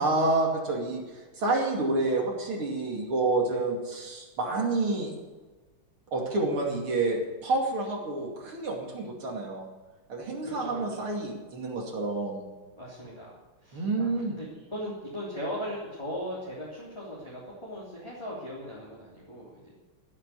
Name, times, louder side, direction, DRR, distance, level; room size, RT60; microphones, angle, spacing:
voice 1, 0.0-5.1 6.1-9.7 10.1-12.4 13.7-14.4, right 2 dB, 75° right, 0 dB, 3.4 m, -29 dB
voice 2, 10.4-11.1 12.8-13.4 13.6-14.1 14.4-19.7, equal, 10° left, -6 dB, 3.4 m, -38 dB
15.5 x 8.6 x 8.4 m, 1.3 s
omnidirectional pair, 2.4 m